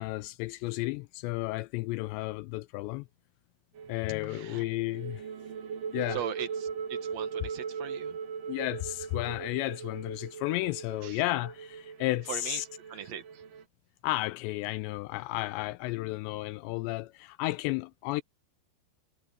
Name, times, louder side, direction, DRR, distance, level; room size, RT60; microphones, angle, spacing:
voice 1, 0.0-3.1 3.9-5.3 5.9-6.2 8.5-12.7 14.0-18.2, left 19 dB, 85° left, 2.6 m, -33 dB
sound 1, 3.7-13.6, right 6 dB, 45° right, 2.6 m, -39 dB
voice 2, 4.3-4.6 6.1-8.2 11.0-11.2 12.3-13.4, right 10 dB, 80° right, 1.5 m, -40 dB
omnidirectional pair, 5.4 m